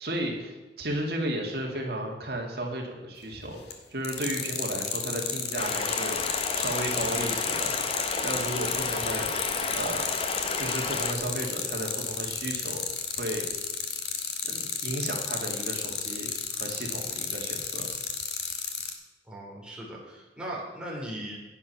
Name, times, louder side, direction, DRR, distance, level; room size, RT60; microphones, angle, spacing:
voice 1, 0.0-3.6 3.9-6.2 6.5-7.7 8.2-9.3 9.7-10.0 10.6-12.8 13.2-13.4 14.4-17.9, right 1 dB, 60° right, 0 dB, 2.3 m, -33 dB
sound 1, 3.3-3.7 4.0-18.9, left 8 dB, 75° left, 1.5 m, -32 dB
Stream, 5.6-11.1, left 4 dB, 30° left, 0.8 m, -32 dB
voice 2, 19.3-21.4, right 1 dB, 5° right, -4 dB, 3.4 m, -38 dB
10.5 x 8.7 x 5.9 m, 1.2 s
head